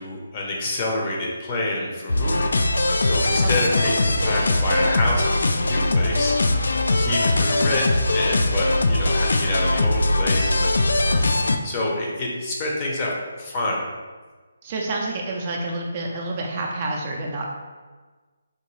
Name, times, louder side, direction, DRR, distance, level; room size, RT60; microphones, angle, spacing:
voice 1, 0.0-2.6 3.0-6.3 6.9-10.7 11.3-13.1 13.4-13.8, left 1 dB, 25° left, -2 dB, 0.6 m, -27 dB
sound 1, 2.1-11.6, left 2 dB, 85° left, 0.3 m, -21 dB
voice 2, 14.6-17.5, right 2 dB, 30° right, -1 dB, 0.4 m, -28 dB
3.7 x 2.6 x 3.0 m, 1.4 s
hypercardioid pair, 170°, 0 cm